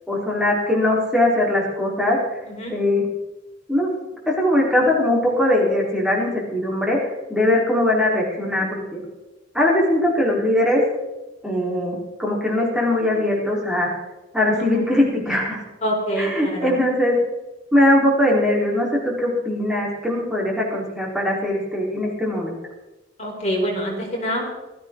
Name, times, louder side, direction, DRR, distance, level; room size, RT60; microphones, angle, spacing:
voice 1, 0.1-2.4 2.7-3.0 3.7-3.9 4.3-9.0 9.5-10.8 11.4-13.9 14.3-15.6 16.2-17.2 17.7-22.6, left 1 dB, 5° right, -4 dB, 4.3 m, -20 dB
voice 2, 15.8-16.7 23.2-24.5, equal, 35° left, -1 dB, 4.5 m, -26 dB
19.5 x 14.0 x 4.0 m, 1.1 s
head